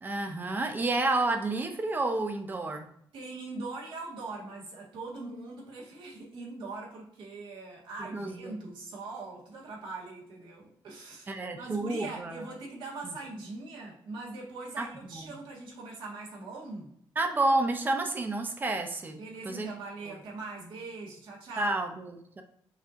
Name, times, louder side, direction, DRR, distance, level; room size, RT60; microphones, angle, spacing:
voice 1, 0.0-2.9 8.0-8.6 11.3-12.5 13.0-13.2 14.8-15.4 17.2-19.2 19.4-19.7 20.1-20.2 21.6-22.4, right 2 dB, 20° right, 5 dB, 0.5 m, -30 dB
voice 2, 3.1-16.9 19.2-21.8, right 3 dB, 70° right, -4 dB, 1.6 m, -41 dB
5.7 x 2.8 x 2.5 m, 0.69 s
cardioid pair, 150°, 9 cm